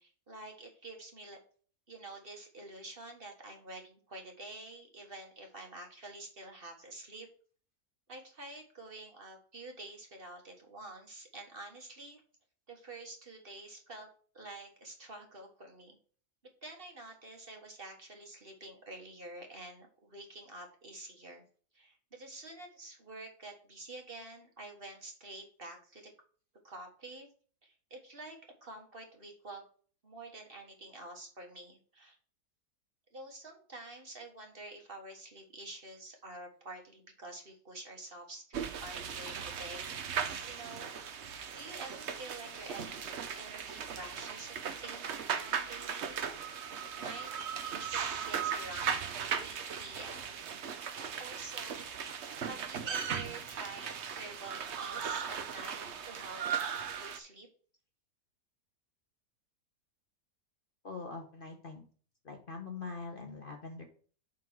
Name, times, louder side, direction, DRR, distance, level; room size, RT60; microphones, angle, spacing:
voice 1, 0.0-1.4 1.9-7.3 8.1-12.2 12.7-14.1 14.3-16.0 16.6-21.4 21.7-26.1 26.6-27.3 27.6-29.6 30.0-32.2 33.1-40.0 40.4-40.9 41.5-45.1 45.3-46.2 46.9-48.9 49.3-50.3 51.2-51.9 52.4-56.4 57.0-57.5, right 2 dB, 40° right, 2 dB, 1.7 m, -48 dB
sound 1, 38.5-57.2, right 7 dB, 55° right, 1.0 m, -38 dB
voice 2, 60.8-61.8 62.2-63.8, left 4 dB, 40° left, 3 dB, 1.1 m, -43 dB
7.6 x 3.7 x 6.2 m, 0.43 s
omnidirectional pair, 1.6 m